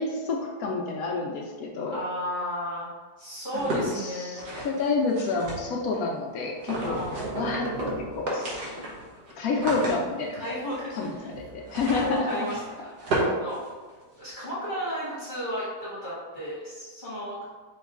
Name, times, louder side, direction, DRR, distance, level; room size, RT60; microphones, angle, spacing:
voice 1, 0.0-2.0 3.5-7.0 7.4-7.7 8.1-8.6 9.4-10.5 11.0-11.1 11.5-12.5, left 3 dB, 70° left, 0 dB, 0.9 m, -29 dB
voice 2, 1.9-2.9 3.2-4.7 6.8-7.3 9.6-9.8 10.4-11.3 12.0-12.9 13.3-13.7 14.2-17.4, equal, 30° left, -10 dB, 1.4 m, -34 dB
sound 1, 3.5-6.0 6.6-7.5 7.7-7.8 8.1-14.3, right 1 dB, 65° right, 1.7 m, -34 dB
sound 2, 6.7-9.9 11.2-12.0 13.2-13.3 13.5-13.6, right 1 dB, 50° right, 0.5 m, -34 dB
4.6 x 3.1 x 3.6 m, 1.4 s
omnidirectional pair, 1.9 m